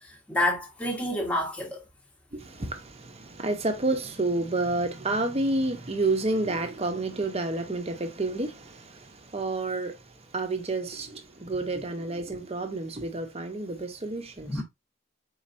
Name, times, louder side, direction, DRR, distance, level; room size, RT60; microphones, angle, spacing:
voice 1, 0.0-1.8 14.5-14.6, left 1 dB, 5° left, 0.9 m, -28 dB
voice 2, 2.3-10.0 10.3-14.6, right 2 dB, 30° right, 0.8 m, -30 dB
4.4 x 3.8 x 2.6 m
head